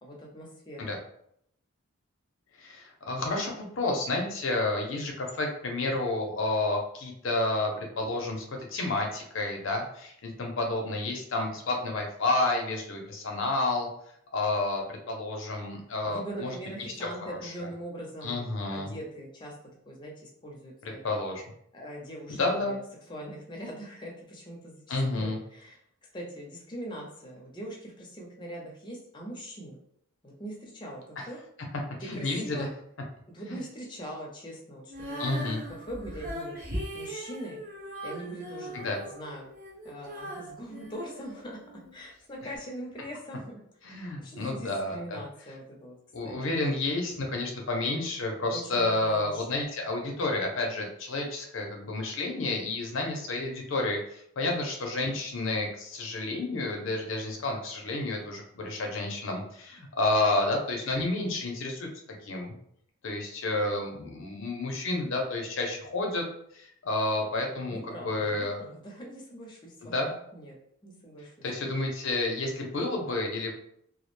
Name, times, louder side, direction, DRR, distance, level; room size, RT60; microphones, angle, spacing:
voice 1, 0.0-1.0 16.0-19.5 19.9-21.2 21.7-22.8 23.1-25.8 26.1-29.8 30.2-31.4 31.9-32.7 33.3-35.3 35.7-36.6 36.9-37.6 38.0-39.5 39.8-41.6 41.9-43.6 44.2-45.9 46.2-46.4 48.5-49.5 67.6-69.9 70.3-70.6 70.8-71.5, right 1 dB, 20° left, -2 dB, 0.5 m, -42 dB
voice 2, 2.6-13.9 14.3-16.5 17.0-17.1 17.4-17.5 18.2-18.9 20.8-21.4 22.3-22.8 24.9-25.4 32.1-32.7 33.5-33.6 35.2-35.6 38.7-39.0 43.8-45.2 46.1-61.9 62.2-62.5 63.0-66.2 66.5-67.8 68.0-68.6 69.8-70.1 71.4-73.5, left 2 dB, 65° left, 1 dB, 0.5 m, -30 dB
Female singing, 34.9-41.9 42.6-42.7, equal, 45° right, 0.8 m, -39 dB
2.3 x 2.1 x 3.0 m, 0.71 s
head